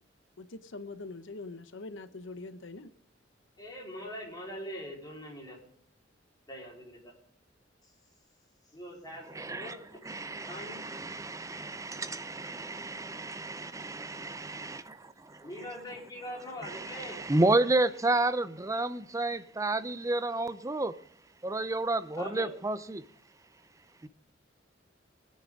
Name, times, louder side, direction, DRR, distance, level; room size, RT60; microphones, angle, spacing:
voice 1, 0.4-2.9, left 3 dB, 75° left, 0.9 m, -43 dB
voice 2, 3.6-5.6 6.5-7.1 8.7-10.0 10.4-10.9 15.4-17.2 22.2-22.5, equal, 20° left, 4.4 m, -42 dB
voice 3, 9.3-9.8 10.0-15.5 16.6-21.0 21.4-23.0 24.0-24.1, right 2 dB, 15° right, 0.6 m, -31 dB
21.0 x 9.6 x 3.7 m
head